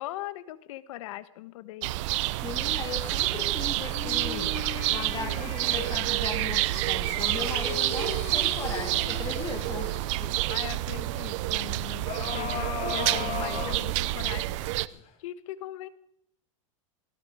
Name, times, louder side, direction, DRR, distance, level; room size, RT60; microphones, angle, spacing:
voice 1, 0.0-2.0 8.3-8.4 10.5-14.7 15.2-15.9, left 15 dB, 65° left, 14 dB, 1.4 m, -40 dB
sound 1, 1.8-14.9, right 17 dB, 60° right, 0.7 m, -28 dB
voice 2, 2.4-4.6 4.9-9.9, left 5 dB, 20° left, 7 dB, 2.0 m, -37 dB
sound 2, 3.0-6.1 6.7-10.3 12.1-14.4 14.9-15.0, left 6 dB, 35° left, 3.9 m, -38 dB
17.0 x 17.0 x 5.1 m, 0.71 s
supercardioid pair, 125°, 18 cm